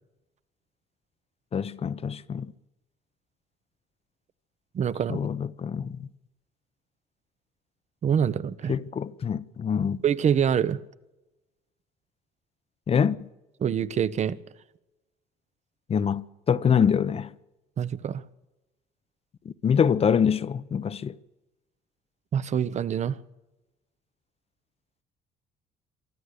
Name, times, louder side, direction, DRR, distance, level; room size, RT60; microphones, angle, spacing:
voice 1, 1.5-2.5 5.1-6.1 8.7-10.0 12.9-13.2 15.9-17.3 19.4-21.2, left 7 dB, 35° left, 0.8 m, -25 dB
voice 2, 4.7-5.2 8.0-8.8 10.0-10.8 13.6-14.4 17.8-18.2 22.3-23.2, right 8 dB, 45° right, 0.9 m, -25 dB
24.5 x 13.0 x 8.3 m
cardioid pair, 110°, 17 cm